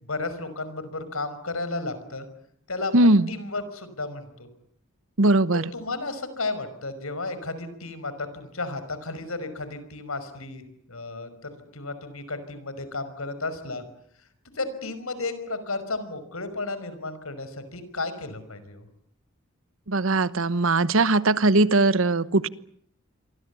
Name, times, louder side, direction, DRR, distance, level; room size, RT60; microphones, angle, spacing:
voice 1, 0.0-2.3 2.7-4.5 5.7-10.6 10.9-13.8 14.5-18.8, left 3 dB, 85° left, 12 dB, 5.4 m, -33 dB
voice 2, 2.9-3.3 5.2-5.7 19.9-22.5, right 2 dB, 70° right, 16 dB, 1.1 m, -20 dB
28.0 x 23.5 x 8.4 m, 0.67 s
head